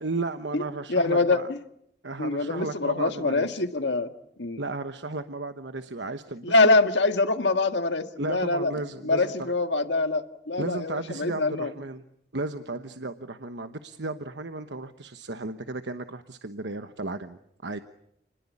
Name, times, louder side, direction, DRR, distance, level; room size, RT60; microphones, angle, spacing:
voice 1, 0.0-1.5 2.0-3.6 4.6-6.6 8.2-9.5 10.6-12.0 12.3-17.8, right 2 dB, 85° right, 9 dB, 1.2 m, -34 dB
voice 2, 0.9-1.6 2.2-4.1 4.4-4.6 6.4-8.7 9.0-11.7, left 3 dB, 90° left, 8 dB, 1.9 m, -24 dB
29.5 x 20.5 x 8.5 m, 0.75 s
head